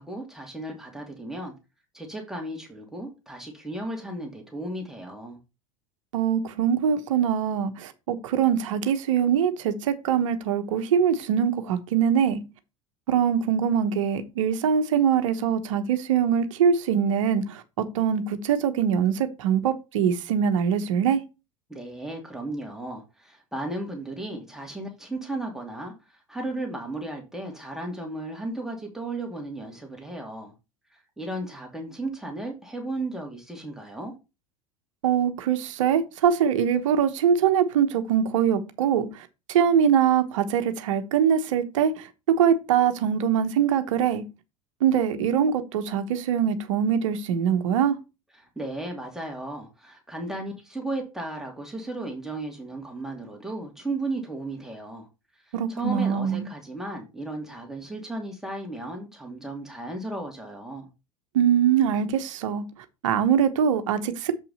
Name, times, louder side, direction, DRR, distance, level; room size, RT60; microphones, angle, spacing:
voice 1, 0.0-1.5 1.9-5.4 21.7-30.5 30.9-34.1 48.3-55.1 55.3-60.9, right 2 dB, 5° right, 2.5 m, -35 dB
voice 2, 6.1-12.4 13.1-21.2 35.0-42.1 42.4-44.2 44.8-48.0 55.5-56.5 61.3-62.6 63.0-64.4, right 8 dB, 65° right, 1.1 m, -23 dB
7.4 x 5.6 x 4.1 m
figure-of-eight pair, 75°, 17 cm